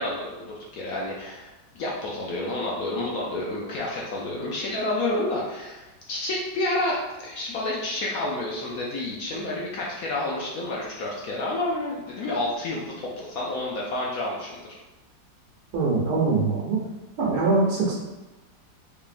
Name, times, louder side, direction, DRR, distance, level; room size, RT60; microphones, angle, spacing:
voice 1, 0.0-14.6, left 2 dB, 70° left, -3 dB, 0.9 m, -29 dB
voice 2, 15.7-16.8 17.2-17.9, right 3 dB, 70° right, -4 dB, 1.4 m, -23 dB
3.6 x 3.3 x 2.5 m, 1.1 s
omnidirectional pair, 1.9 m